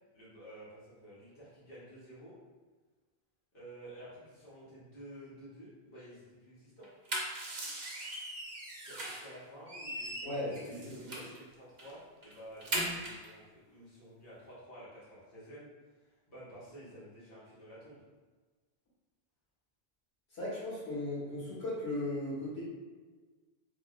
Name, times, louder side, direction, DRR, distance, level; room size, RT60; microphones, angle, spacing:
voice 1, 0.1-2.3 3.5-6.9 8.7-15.7 15.9-18.0, equal, 55° left, -10 dB, 1.4 m, -51 dB
sound 1, 6.8-9.3 9.7-11.4 11.8-11.9 12.2-13.3, right 1 dB, 50° right, 0.6 m, -39 dB
voice 2, 10.2-10.8 11.0-11.3 20.3-22.6, left 1 dB, 75° left, -9 dB, 1.6 m, -37 dB
3.5 x 2.5 x 2.4 m, 1.4 s
omnidirectional pair, 1.1 m